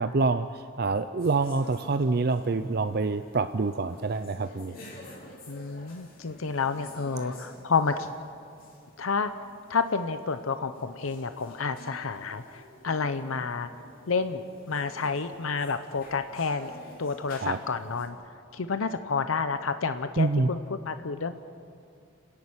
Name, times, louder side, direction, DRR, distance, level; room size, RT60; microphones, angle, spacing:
voice 1, 0.0-4.8 17.4-17.6 20.2-20.5, right 3 dB, 50° right, 10 dB, 0.5 m, -26 dB
sound 1, 1.2-18.1, left 1 dB, 45° left, 3.5 m, -50 dB
voice 2, 5.5-8.1 9.0-9.3 9.7-13.7 14.1-16.7 17.0-18.2 18.5-20.6 20.9-21.3, left 4 dB, 85° left, 10 dB, 0.7 m, -29 dB
30.0 x 11.0 x 8.8 m, 2.5 s
head